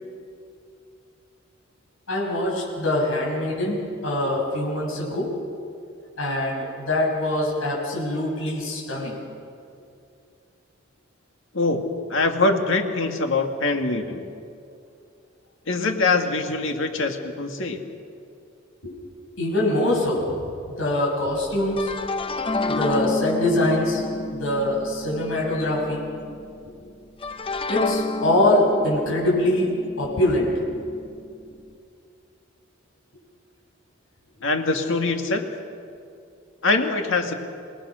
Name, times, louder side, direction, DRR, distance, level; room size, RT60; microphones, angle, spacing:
voice 1, 2.1-5.3 6.2-9.2 18.8-18.9 19.4-20.5 20.8-21.9 22.7-24.0 24.3-26.0 27.7-29.7 30.0-30.8, left 1 dB, 85° left, -3 dB, 6.9 m, -23 dB
voice 2, 12.1-14.2 15.7-17.8 34.4-35.5 36.6-37.3, left 3 dB, 65° left, 5 dB, 2.1 m, -23 dB
sound 1, 21.4-26.6 27.2-31.3, left 3 dB, 25° left, 0.8 m, -30 dB
27.0 x 19.5 x 6.4 m, 2.5 s
head